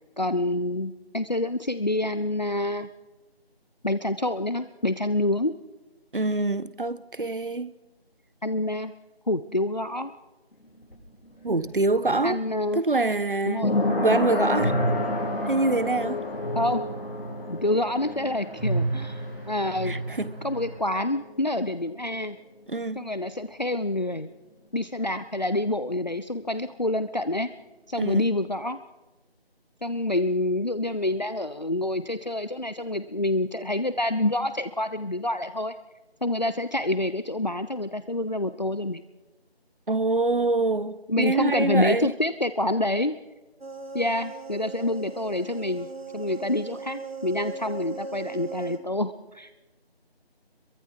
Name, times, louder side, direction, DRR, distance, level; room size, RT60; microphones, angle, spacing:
voice 1, 0.2-2.9 3.8-5.5 8.4-8.9 9.3-10.1 12.2-12.8 13.5-13.7 16.6-16.8 17.5-20.0 20.4-22.4 23.0-24.3 24.7-27.5 27.9-28.8 29.8-35.7 36.2-39.0 41.1-43.1 43.9-45.9 46.1-49.5, left 1 dB, 45° left, 0.7 m, -27 dB
voice 2, 6.1-7.7 11.4-12.4 12.7-14.8 15.5-16.2 19.8-20.4 22.7-23.1 28.0-28.2 39.9-42.1, right 2 dB, 55° right, 1.1 m, -25 dB
sound 1, 10.5-22.1 22.3-22.4, left 2 dB, 70° left, 5.3 m, -31 dB
sound 2, 14.5-20.8, right 2 dB, 10° right, 5.5 m, -32 dB
sound 3, 43.6-48.8, right 5 dB, 70° right, 2.6 m, -38 dB
26.0 x 23.0 x 4.7 m
figure-of-eight pair, 180°, 31 cm